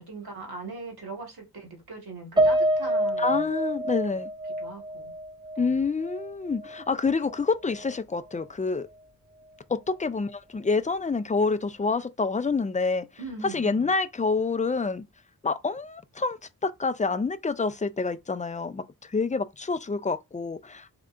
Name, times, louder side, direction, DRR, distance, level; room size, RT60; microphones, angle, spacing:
voice 1, 0.0-3.5 4.1-4.2 4.6-5.1 5.5-5.8 13.2-13.9, right 3 dB, 85° right, 1.5 m, -40 dB
Piano, 2.4-6.8 7.2-7.4 7.8-7.9, right 1 dB, 15° right, 0.7 m, -27 dB
voice 2, 3.2-4.3 5.6-8.9 9.7-13.1 13.4-15.0 15.4-20.9, left 4 dB, 20° left, 0.4 m, -27 dB
3.7 x 3.5 x 2.5 m
wide cardioid pair, 75°, 37 cm